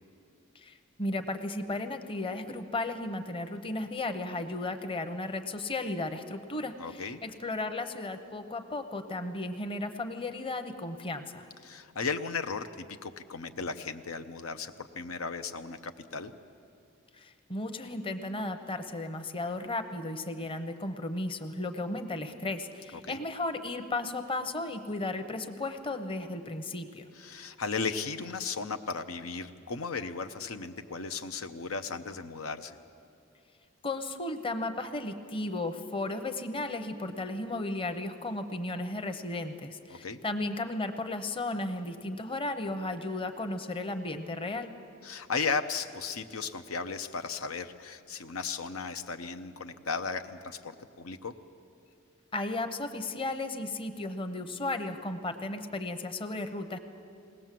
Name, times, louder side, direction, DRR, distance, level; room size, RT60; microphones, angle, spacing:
voice 1, 0.6-11.5 17.2-27.0 33.8-44.7 52.3-56.8, left 2 dB, 25° left, 7 dB, 0.9 m, -35 dB
voice 2, 6.8-7.2 11.6-16.3 22.9-23.2 27.1-32.8 39.9-40.2 45.0-51.3, left 5 dB, 90° left, 8 dB, 0.8 m, -36 dB
20.5 x 18.5 x 7.6 m, 2.5 s
head